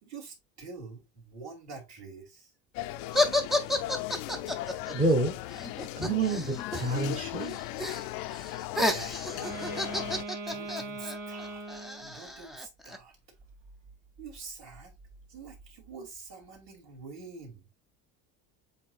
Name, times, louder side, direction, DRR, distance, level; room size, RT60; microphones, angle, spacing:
voice 1, 0.0-2.5 8.9-9.3 10.5-11.6 12.0-13.2 14.2-14.9 15.3-17.6, right 4 dB, 50° right, 2.7 m, -46 dB
sound 1, 2.7-10.2, left 15 dB, 70° left, 0.5 m, -37 dB
sound 2, 3.1-7.2 7.4-8.0 8.3-13.0, left 1 dB, ahead, 0.4 m, -31 dB
voice 2, 4.9-5.3 6.0-7.6, right 2 dB, 20° right, 0.9 m, -28 dB
Wind instrument woodwind instrument, 9.2-12.1, right 2 dB, 80° right, 2.2 m, -40 dB
7.6 x 2.8 x 2.3 m
cardioid pair, 135°, 35 cm